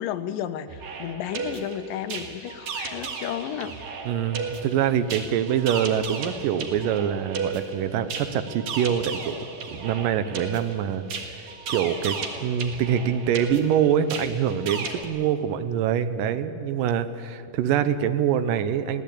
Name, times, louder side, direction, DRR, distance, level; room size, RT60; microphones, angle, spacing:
voice 1, 0.0-3.8, left 10 dB, 85° left, 10 dB, 2.6 m, -32 dB
sound 1, 0.7-15.1, right 5 dB, 60° right, 2.8 m, -35 dB
voice 2, 4.1-9.4 9.7-19.0, right 9 dB, 90° right, 12 dB, 2.5 m, -25 dB
24.0 x 16.5 x 8.6 m, 2.5 s
omnidirectional pair, 3.8 m